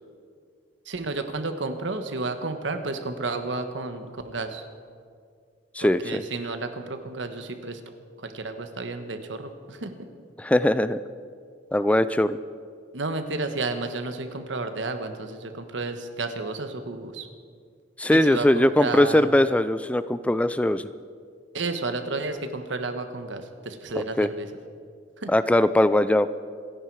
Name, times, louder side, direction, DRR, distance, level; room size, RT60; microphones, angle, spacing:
voice 1, 0.8-4.6 5.8-7.8 8.2-9.9 12.9-17.3 18.1-19.3 21.5-24.5 25.2-25.3, right 3 dB, 75° right, 8 dB, 1.3 m, -32 dB
voice 2, 5.7-6.2 10.4-11.0 11.7-12.4 18.0-20.9 24.2-24.3 25.3-26.3, left 1 dB, 5° left, 14 dB, 0.3 m, -20 dB
26.0 x 10.5 x 4.7 m, 2.1 s
head